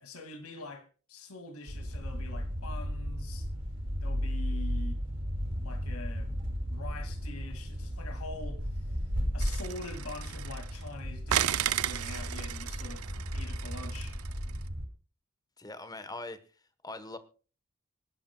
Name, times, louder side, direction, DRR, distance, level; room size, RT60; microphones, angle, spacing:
voice 1, 0.0-3.5 4.0-5.0 5.6-6.3 6.7-8.8 9.3-13.1 13.3-14.2, left 2 dB, 85° left, 2.4 m, -44 dB
sound 1, 1.7-14.8, equal, 60° right, 5.9 m, -35 dB
sound 2, 9.4-10.9 11.3-14.6, right 10 dB, 90° right, 0.6 m, -34 dB
voice 2, 15.6-16.4 16.8-17.2, left 2 dB, 20° left, 1.2 m, -41 dB
25.5 x 11.5 x 2.3 m
head